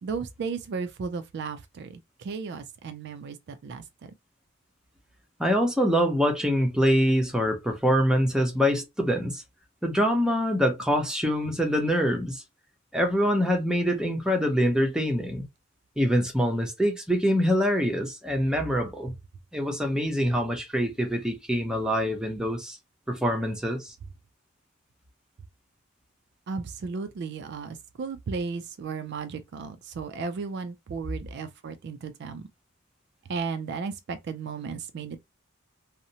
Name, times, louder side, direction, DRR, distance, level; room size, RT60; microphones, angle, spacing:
voice 1, 0.0-4.1 26.5-32.5 33.3-35.2, right 5 dB, 55° right, 0.3 m, -35 dB
voice 2, 5.4-9.4 9.8-12.4 12.9-15.4 16.0-19.1 19.5-22.8 23.1-23.9, equal, 5° right, 0.6 m, -25 dB
2.7 x 2.0 x 2.7 m
head